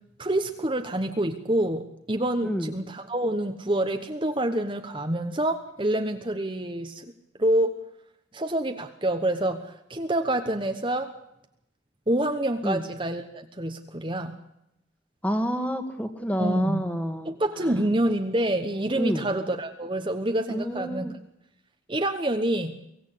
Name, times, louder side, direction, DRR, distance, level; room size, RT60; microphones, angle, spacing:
voice 1, 0.2-7.0 7.4-7.8 8.3-11.1 12.1-14.4 16.4-16.8 17.2-21.1 21.9-22.8, right 1 dB, 25° right, 6 dB, 1.1 m, -27 dB
voice 2, 2.4-2.7 12.6-12.8 15.2-17.3 19.0-19.2 20.5-21.1, equal, 5° left, 7 dB, 1.8 m, -28 dB
23.5 x 17.0 x 8.5 m, 0.81 s
head